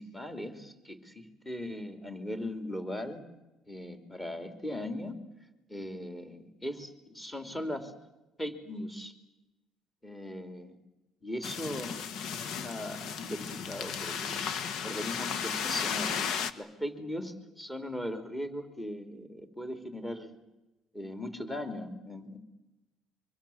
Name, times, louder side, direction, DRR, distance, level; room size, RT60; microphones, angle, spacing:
voice 1, 0.0-3.2 3.7-5.2 5.7-7.9 8.4-9.1 10.0-10.8 11.2-12.0 12.4-14.5 14.8-20.4 20.9-22.4, left 1 dB, 10° left, 7 dB, 3.4 m, -39 dB
sound 1, 11.4-16.5, left 7 dB, 65° left, 1.4 m, -34 dB
24.5 x 24.0 x 7.3 m, 1.0 s
cardioid pair, 115°, 0 cm